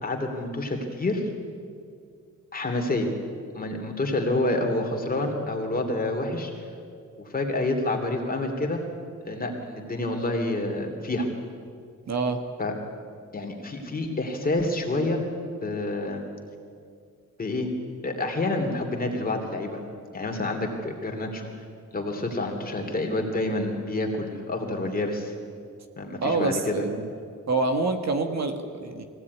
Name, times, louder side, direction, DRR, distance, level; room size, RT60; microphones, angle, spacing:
voice 1, 0.0-1.3 2.5-3.1 3.5-6.5 7.2-8.8 9.2-11.3 12.6-12.7 13.3-15.2 15.6-16.2 17.4-17.7 18.0-19.8 20.1-21.5 21.9-25.3 26.0-26.8, left 2 dB, 30° left, 2 dB, 3.0 m, -28 dB
voice 2, 12.1-12.4 26.2-27.1 27.5-29.0, right 3 dB, 55° right, 6 dB, 1.7 m, -26 dB
22.0 x 16.5 x 9.6 m, 2.3 s
wide cardioid pair, 165°, 32 cm